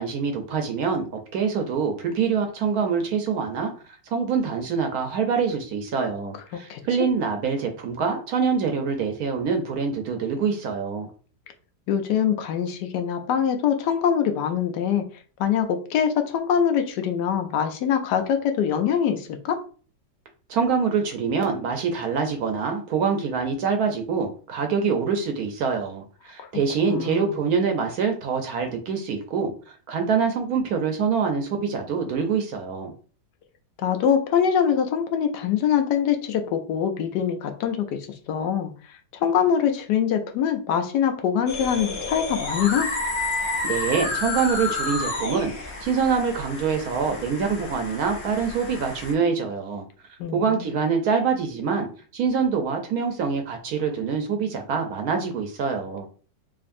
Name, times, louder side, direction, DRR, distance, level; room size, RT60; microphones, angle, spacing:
voice 1, 0.0-3.7 4.1-11.1 20.5-29.5 29.9-32.9 43.6-49.8 50.3-51.9 52.1-56.1, right 5 dB, 70° right, 5 dB, 1.0 m, -25 dB
voice 2, 11.9-15.0 15.4-19.6 26.8-27.4 33.8-38.0 38.3-42.9 50.2-50.5, left 8 dB, 80° left, 6 dB, 1.2 m, -24 dB
sound 1, 41.5-49.1, left 3 dB, 50° left, 0.9 m, -30 dB
5.0 x 2.5 x 2.5 m, 0.39 s
omnidirectional pair, 1.9 m